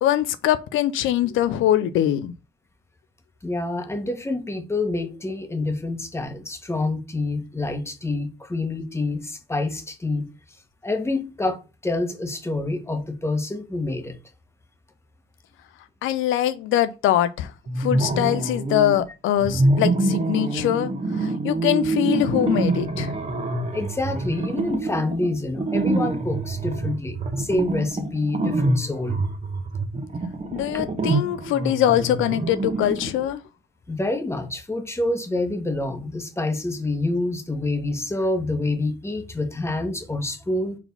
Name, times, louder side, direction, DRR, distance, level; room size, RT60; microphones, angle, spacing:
voice 1, 0.0-2.3 16.0-17.5 17.8-20.9 21.2-23.1 30.5-33.4, left 12 dB, 85° left, 0.5 m, -22 dB
voice 2, 3.4-10.3 10.8-14.2 23.7-29.2 33.9-40.8, left 2 dB, 15° left, 1.4 m, -27 dB
sound 1, 17.7-19.0 19.4-33.3, right 2 dB, 35° right, 1.3 m, -25 dB
4.7 x 3.9 x 5.3 m
cardioid pair, 90°, 20 cm